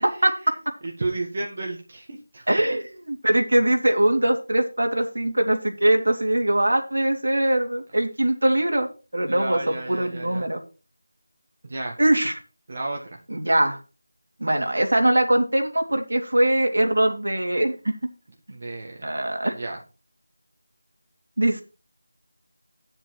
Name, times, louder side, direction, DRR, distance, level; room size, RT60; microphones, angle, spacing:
voice 1, 0.8-2.4 9.3-10.5 11.6-11.9 12.7-13.2 18.5-19.1 19.5-19.8, right 2 dB, 35° right, 1 dB, 1.6 m, -32 dB
voice 2, 2.5-8.9 9.1-10.6 12.0-12.4 13.3-13.8 14.4-17.9 19.0-19.5 21.4-21.6, right 1 dB, 80° right, 3 dB, 3.2 m, -22 dB
9.9 x 7.7 x 4.7 m, 0.33 s
figure-of-eight pair, 175°, 0 cm